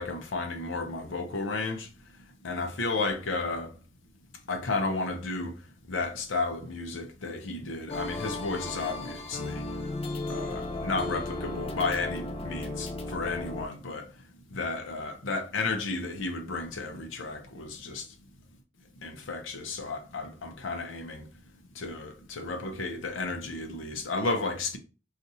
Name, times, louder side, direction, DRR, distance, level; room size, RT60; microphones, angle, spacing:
voice 1, 0.0-1.9 2.4-3.7 4.5-5.6 5.9-9.6 10.3-14.1 14.5-18.1 19.0-21.3 21.8-24.8, left 3 dB, 85° left, 0.6 m, -33 dB
sound 1, 7.9-13.7, left 2 dB, 30° left, 0.4 m, -35 dB
2.7 x 2.5 x 4.1 m
head